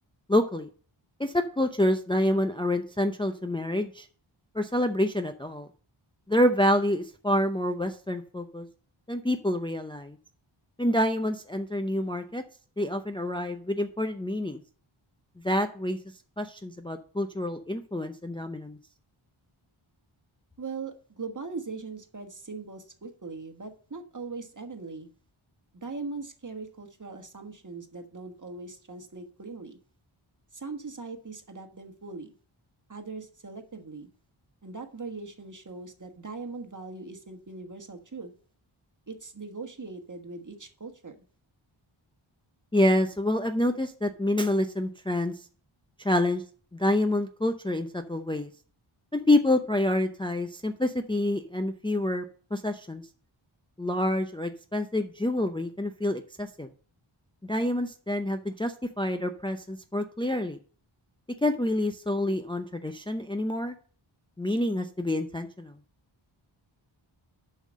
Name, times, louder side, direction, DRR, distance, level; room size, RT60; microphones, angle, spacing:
voice 1, 0.3-0.7 1.2-4.1 4.5-5.7 6.3-8.7 9.1-10.2 10.8-12.4 12.8-14.6 15.4-16.0 16.4-18.8 42.7-45.3 46.0-46.4 46.7-48.5 49.1-52.2 52.5-53.0 53.8-56.7 57.4-60.6 61.4-63.7 64.4-65.7, left 1 dB, 10° left, 6 dB, 0.6 m, -27 dB
voice 2, 20.6-25.1 25.7-29.8 30.5-32.3 32.9-34.1 34.6-38.3 39.1-41.2, right 4 dB, 35° right, 6 dB, 1.4 m, -40 dB
7.1 x 5.7 x 6.2 m, 0.43 s
wide cardioid pair, 55°, 50 cm